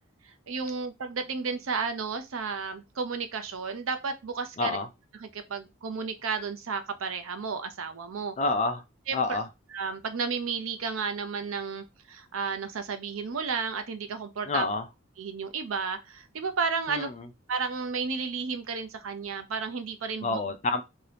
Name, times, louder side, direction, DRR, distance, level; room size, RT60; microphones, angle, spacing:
voice 1, 0.5-4.8 5.1-8.3 9.1-9.4 9.7-14.7 15.2-17.1 17.5-20.4, right 5 dB, 80° right, 0.6 m, -32 dB
voice 2, 8.4-8.8 9.1-9.4 14.5-14.9 16.9-17.3 20.2-20.8, left 3 dB, 35° left, 0.4 m, -28 dB
2.8 x 2.7 x 3.3 m
head